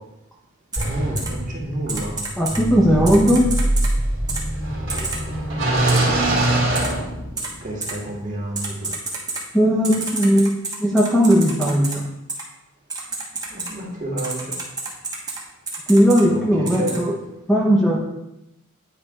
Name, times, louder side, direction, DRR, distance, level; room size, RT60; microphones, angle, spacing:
Typing, 0.7-0.8 1.2-1.3 1.9-2.6 3.1-3.9 4.3-4.4 4.9-5.2 5.9-6.0 6.8-6.9 7.4-7.5 7.8-7.9 8.6-9.4 9.8-11.9 12.3-12.4 12.9-13.7 14.2-15.4 15.7-16.2 16.7-17.0, right 3 dB, 20° right, 1.1 m, -29 dB
voice 1, 0.8-2.1 7.6-8.7 13.5-14.5 16.3-17.0, right 1 dB, 35° right, -4 dB, 1.9 m, -29 dB
sound 1, 0.8-7.7, right 1 dB, 60° right, 1.9 m, -23 dB
voice 2, 2.4-3.5 9.5-12.0 15.9-17.2 17.5-18.0, equal, ahead, -3 dB, 0.8 m, -17 dB
9.9 x 3.4 x 4.8 m, 0.89 s
head